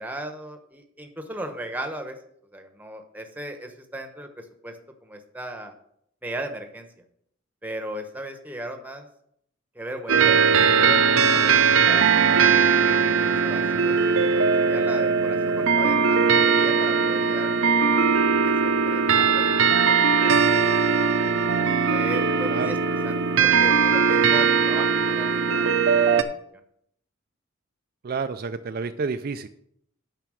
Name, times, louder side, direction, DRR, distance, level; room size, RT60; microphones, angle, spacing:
voice 1, 0.0-2.2 2.5-4.8 5.0-5.7 6.2-6.9 7.6-9.1 9.7-10.4 10.8-17.7 18.0-18.1 18.4-20.9 21.9-26.2, right 1 dB, 10° right, 5 dB, 1.0 m, -37 dB
sound 1, 10.1-26.2, right 5 dB, 70° right, 0.7 m, -20 dB
voice 2, 28.0-29.5, right 4 dB, 45° right, 8 dB, 0.4 m, -29 dB
9.2 x 5.7 x 6.3 m, 0.71 s
head